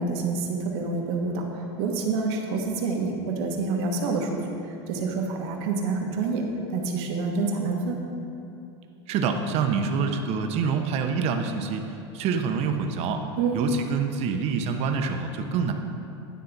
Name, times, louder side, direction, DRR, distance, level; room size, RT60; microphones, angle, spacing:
voice 1, 0.0-1.5 1.8-4.4 4.9-6.4 6.7-8.0 13.4-13.6, right 4 dB, 65° right, 2 dB, 1.2 m, -27 dB
voice 2, 9.1-11.8 12.1-13.2 13.5-15.7, right 5 dB, 45° right, 5 dB, 0.8 m, -26 dB
10.0 x 3.8 x 5.7 m, 2.7 s
hypercardioid pair, 110°, 15 cm